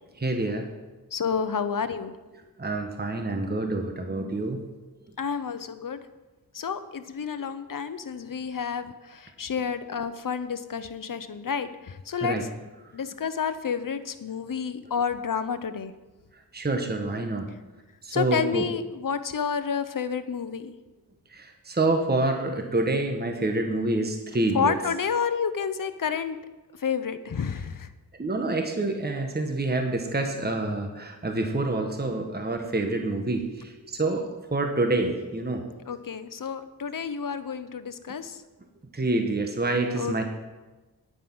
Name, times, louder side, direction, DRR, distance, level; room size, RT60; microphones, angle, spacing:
voice 1, 0.2-0.7 2.6-4.6 12.2-12.4 16.5-17.5 18.0-18.6 21.3-24.7 28.2-35.6 38.9-40.2, right 2 dB, 25° right, 5 dB, 1.1 m, -27 dB
voice 2, 1.1-2.1 5.2-6.0 6.5-12.5 12.9-15.9 18.1-20.7 24.5-26.4 26.8-27.9 35.9-38.4 40.0-40.2, left 6 dB, 55° left, 11 dB, 0.8 m, -30 dB
9.5 x 9.1 x 6.1 m, 1.2 s
wide cardioid pair, 85°, 38 cm